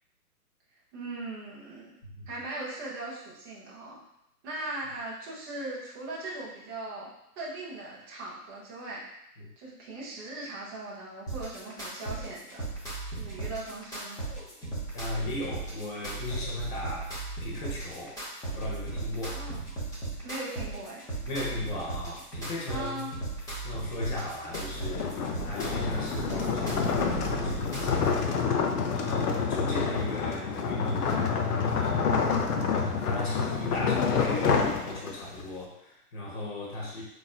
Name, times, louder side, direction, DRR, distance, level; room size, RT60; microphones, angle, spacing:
voice 1, 0.9-1.9 2.3-4.0 4.4-9.0 9.6-12.7 13.1-14.2 19.3-19.6 20.2-21.0 22.7-23.1, right 2 dB, 15° right, -6 dB, 0.5 m, -39 dB
sound 1, 11.3-28.3, right 3 dB, 5° left, 0.8 m, -37 dB
voice 2, 14.9-17.1 17.4-18.2 18.5-19.4 21.2-23.2 23.6-32.1 32.7-37.0, left 2 dB, 30° left, -3 dB, 1.1 m, -37 dB
sound 2, 24.4-35.4, left 5 dB, 75° left, 0.7 m, -28 dB
4.2 x 3.1 x 2.3 m, 0.81 s
hypercardioid pair, 135°, 47 cm